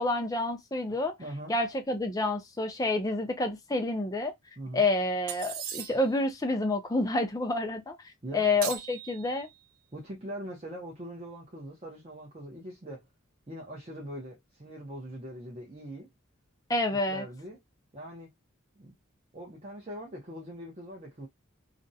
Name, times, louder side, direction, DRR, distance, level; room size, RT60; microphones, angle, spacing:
voice 1, 0.0-1.1 1.5-4.3 4.7-8.0 8.3-9.5 16.7-17.2, left 2 dB, 15° left, 0.4 m, -28 dB
voice 2, 1.2-1.6 4.6-4.9 8.2-8.7 9.9-13.1 13.5-16.1 17.1-17.6 17.9-18.3 18.8-19.0 19.3-21.3, right 1 dB, 30° right, 0.6 m, -42 dB
sound 1, 5.3-6.2 8.6-9.7, right 9 dB, 85° right, 0.4 m, -39 dB
2.5 x 2.1 x 2.6 m
head